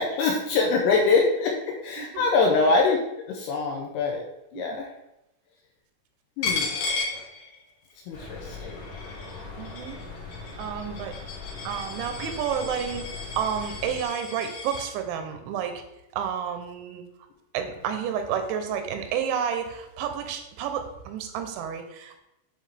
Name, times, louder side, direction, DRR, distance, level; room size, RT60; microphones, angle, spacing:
voice 1, 0.0-3.0 3.3-4.2 4.5-4.9 6.4-6.7 8.1-8.7 10.9-11.0, left 4 dB, 80° left, 0 dB, 2.4 m, -24 dB
Coin (dropping), 6.4-7.9 8.3-14.9, left 4 dB, 65° left, 2.4 m, -34 dB
sound 1, 8.1-14.1, left 4 dB, 50° left, 3.2 m, -40 dB
voice 2, 9.6-10.0 10.6-11.2 11.6-15.8 16.1-17.0 17.5-22.2, right 8 dB, 85° right, 7 dB, 3.1 m, -30 dB
8.6 x 3.8 x 3.3 m, 0.88 s
omnidirectional pair, 5.2 m